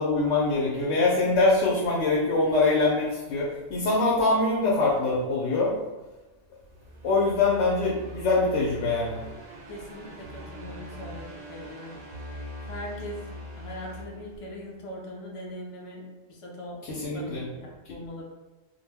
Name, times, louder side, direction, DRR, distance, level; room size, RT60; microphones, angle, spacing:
voice 1, 0.0-5.7 7.0-9.2 16.8-17.4 17.8-17.9, left 3 dB, 85° left, -4 dB, 0.9 m, -24 dB
sound 1, 6.6-14.9, equal, 50° right, 0.4 m, -42 dB
voice 2, 9.7-11.9 12.7-13.2 13.5-16.8 17.1-18.2, left 1 dB, 50° left, -2 dB, 0.4 m, -40 dB
2.2 x 2.1 x 3.3 m, 1.1 s
omnidirectional pair, 1.2 m